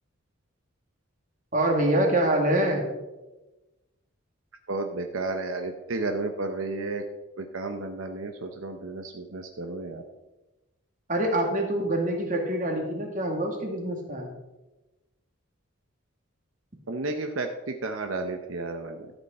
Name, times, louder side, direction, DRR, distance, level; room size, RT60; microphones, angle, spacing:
voice 1, 1.5-2.8 11.1-14.3, right 1 dB, 40° right, 2 dB, 2.0 m, -25 dB
voice 2, 4.7-7.0 7.4-10.0 16.9-19.1, right 3 dB, 80° right, 5 dB, 0.8 m, -32 dB
13.0 x 8.1 x 4.3 m, 1.1 s
head